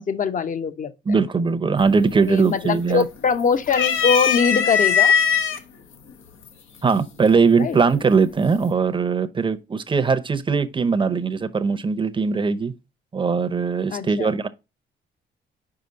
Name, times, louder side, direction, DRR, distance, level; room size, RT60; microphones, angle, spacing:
voice 1, 0.0-1.2 2.3-5.1 7.6-7.8 13.9-14.3, left 6 dB, 40° left, 0.8 m, -22 dB
voice 2, 1.1-3.1 6.8-12.7 13.1-14.5, right 5 dB, 25° right, 0.7 m, -20 dB
sound 1, 1.8-2.2 2.6-3.3 3.7-5.6 6.5-6.6 7.8-8.3, left 7 dB, 80° left, 1.0 m, -20 dB
5.1 x 4.9 x 3.9 m
cardioid pair, 90°, 20 cm